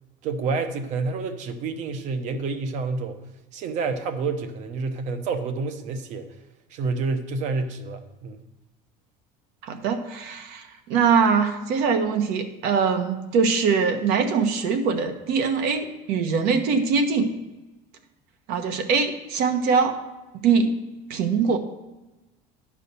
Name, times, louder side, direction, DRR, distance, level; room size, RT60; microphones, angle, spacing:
voice 1, 0.2-3.2 3.5-6.3 6.7-8.4, right 4 dB, 50° right, 9 dB, 0.9 m, -28 dB
voice 2, 9.6-17.3 18.5-19.9 20.4-20.7 21.1-21.6, right 5 dB, 65° right, 6 dB, 1.1 m, -22 dB
11.0 x 4.9 x 6.8 m, 1.1 s
cardioid pair, 175°, 16 cm